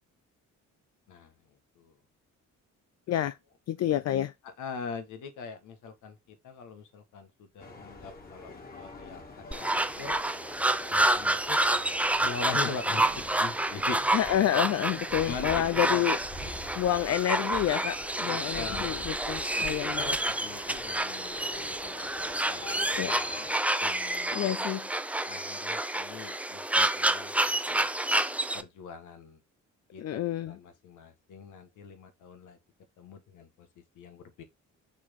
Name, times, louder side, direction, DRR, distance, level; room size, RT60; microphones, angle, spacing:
voice 1, 3.7-4.3 14.1-16.2 16.8-20.2 23.0-23.5 24.3-24.9 30.0-30.6, left 12 dB, 55° left, 0.5 m, -29 dB
voice 2, 4.6-10.2 10.9-11.6 12.2-14.2 15.2-16.0 16.4-16.8 18.2-19.0 19.6-22.1 22.5-23.1 23.8-24.4 25.3-27.9 28.5-29.4 29.9-32.6 33.0-33.7 33.9-34.4, left 5 dB, 80° left, 1.7 m, -42 dB
sound 1, 7.6-23.6, left 2 dB, 30° left, 2.3 m, -45 dB
sound 2, 9.5-28.6, right 1 dB, 5° right, 0.5 m, -29 dB
6.1 x 4.3 x 3.7 m
cardioid pair, 90°, 30 cm